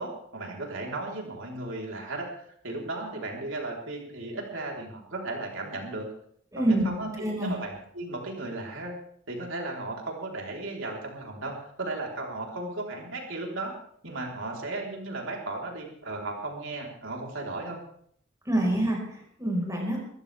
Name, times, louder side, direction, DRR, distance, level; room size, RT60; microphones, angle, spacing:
voice 1, 0.0-6.1 6.6-9.0 9.3-13.7 14.0-17.8 18.5-18.6, right 2 dB, 65° right, -1 dB, 4.2 m, -35 dB
voice 2, 6.5-6.8 7.2-7.5 18.5-20.0, right 1 dB, 15° right, -1 dB, 5.2 m, -26 dB
22.5 x 14.5 x 3.6 m, 0.65 s
head